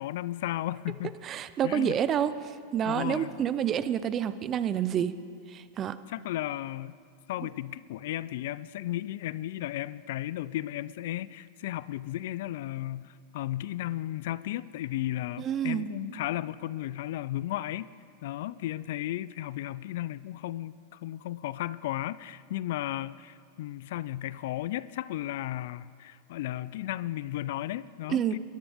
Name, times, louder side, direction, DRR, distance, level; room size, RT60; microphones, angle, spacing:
voice 1, 0.0-1.1 1.6-2.0 2.8-3.4 6.1-7.0 7.3-17.9 18.2-28.4, left 14 dB, 65° left, 19 dB, 0.3 m, -34 dB
voice 2, 1.2-2.3 2.7-5.1 5.5-6.0 15.4-15.9 28.1-28.4, right 9 dB, 25° right, 14 dB, 0.5 m, -28 dB
21.5 x 13.0 x 3.6 m, 2.2 s
supercardioid pair, 145°, 0 cm